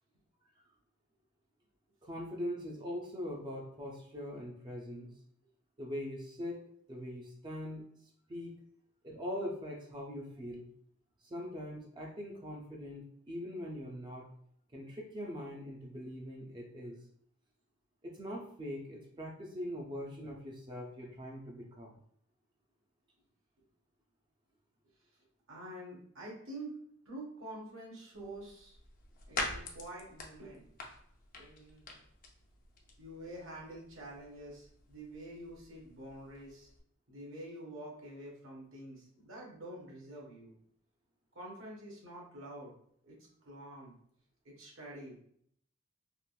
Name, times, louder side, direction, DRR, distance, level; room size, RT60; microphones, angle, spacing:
voice 1, 2.0-5.1 5.8-6.6 6.9-7.8 8.3-8.5 9.0-10.7 11.2-14.3 14.7-17.0 18.0-21.9, equal, 25° right, -1 dB, 0.4 m, -42 dB
voice 2, 25.5-26.8 27.0-28.8 29.3-30.7 31.3-31.9 33.0-36.7 37.1-40.6 41.3-42.7 43.0-43.2 43.4-44.0 44.4-45.2, right 1 dB, 85° right, -3 dB, 1.1 m, -47 dB
sound 1, 28.1-36.8, left 3 dB, 45° left, 0.5 m, -46 dB
3.5 x 2.4 x 2.3 m, 0.66 s
head